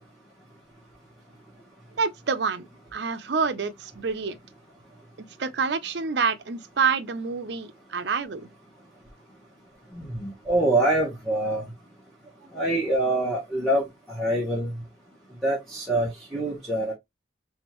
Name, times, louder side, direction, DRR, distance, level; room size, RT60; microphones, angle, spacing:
voice 1, 2.0-4.4 5.2-8.5, right 5 dB, 60° right, 0.5 m, -27 dB
voice 2, 9.9-11.6 12.5-14.7 15.4-16.9, right 1 dB, ahead, 1.0 m, -25 dB
3.5 x 3.4 x 3.0 m
head